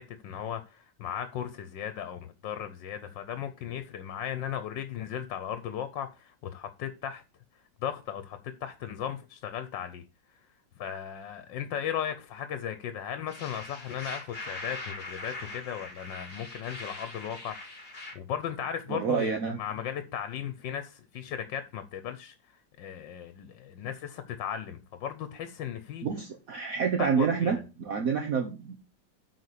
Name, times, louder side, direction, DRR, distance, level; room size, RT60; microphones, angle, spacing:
voice 1, 0.0-7.2 7.8-10.0 10.8-26.1 27.0-27.5, left 9 dB, 80° left, 1.5 m, -36 dB
sound 1, 13.3-18.1, left 2 dB, 30° left, 2.4 m, -42 dB
voice 2, 18.9-19.6 26.0-28.7, right 6 dB, 55° right, 1.4 m, -28 dB
8.5 x 4.4 x 6.7 m
omnidirectional pair, 1.9 m